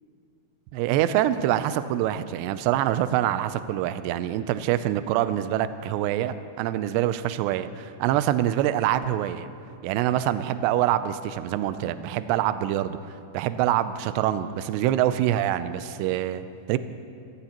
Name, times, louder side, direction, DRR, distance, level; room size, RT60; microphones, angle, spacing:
voice 1, 0.7-9.5 9.8-13.0 13.3-16.8, right 12 dB, 85° right, 12 dB, 2.5 m, -25 dB
26.0 x 18.0 x 3.0 m, 2.5 s
omnidirectional pair, 5.6 m